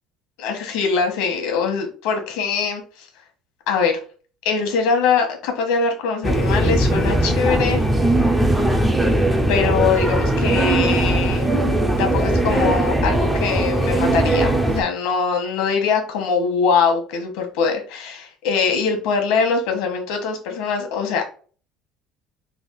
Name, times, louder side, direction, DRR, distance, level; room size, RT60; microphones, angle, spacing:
voice 1, 0.4-3.1 3.7-4.0 4.4-7.8 9.5-11.5 12.0-21.3, left 5 dB, 80° left, 4 dB, 1.2 m, -22 dB
sound 1, 6.2-14.8, right 1 dB, 5° right, 0.4 m, -19 dB
3.4 x 2.4 x 3.8 m, 0.40 s
cardioid pair, 165°, 0 cm